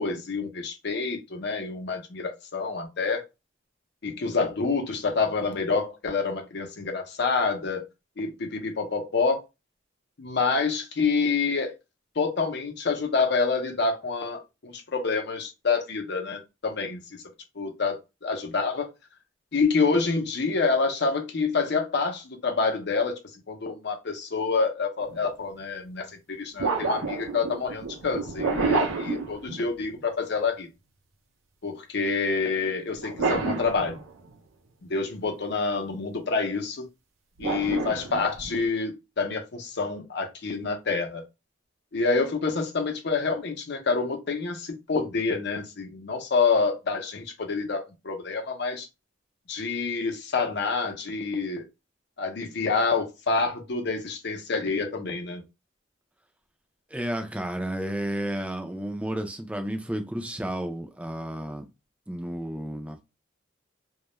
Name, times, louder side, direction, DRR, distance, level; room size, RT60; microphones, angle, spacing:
voice 1, 0.0-3.2 4.0-7.8 8.2-9.4 10.2-11.7 12.2-17.2 17.6-18.9 19.5-23.2 23.5-30.7 31.6-34.0 34.8-36.9 37.4-41.2 41.9-48.9 49.5-51.6 52.2-55.4, left 4 dB, 60° left, 0.6 m, -27 dB
sound 1, 25.0-25.2 26.6-30.0 33.0-34.4 37.4-38.7, right 4 dB, 85° right, 0.6 m, -29 dB
voice 2, 56.9-61.6 62.1-63.0, right 1 dB, 5° right, 0.4 m, -32 dB
2.3 x 2.0 x 2.9 m
head